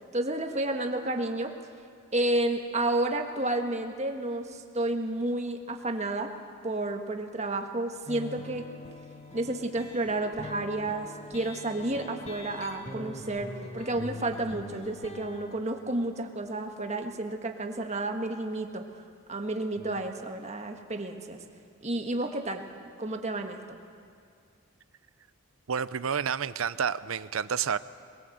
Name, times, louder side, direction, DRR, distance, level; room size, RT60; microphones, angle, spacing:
voice 1, 0.1-1.5 2.1-6.3 6.6-8.7 9.3-18.8 19.3-21.4 21.8-22.7 23.0-23.8, right 2 dB, 35° right, 4 dB, 1.6 m, -31 dB
sound 1, 8.1-15.5, left 2 dB, 30° left, 1.5 m, -43 dB
voice 2, 25.7-27.8, right 7 dB, 80° right, 15 dB, 0.6 m, -29 dB
23.0 x 21.0 x 8.0 m, 2.2 s
head